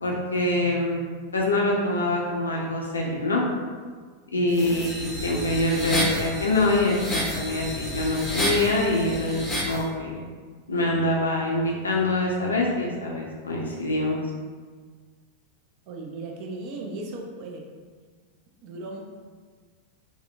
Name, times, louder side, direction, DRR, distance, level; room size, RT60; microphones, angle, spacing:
voice 1, 0.0-1.1 1.3-3.4 4.3-10.2 10.7-14.2, left 2 dB, 75° left, -1 dB, 0.5 m, -25 dB
voice 2, 4.3-4.8 15.9-17.7 18.6-19.0, right 2 dB, 40° right, 0 dB, 0.5 m, -37 dB
sound 1, 4.5-9.8, equal, 15° left, 0.6 m, -30 dB
3.6 x 2.1 x 2.3 m, 1.5 s
figure-of-eight pair, 90°, 0 cm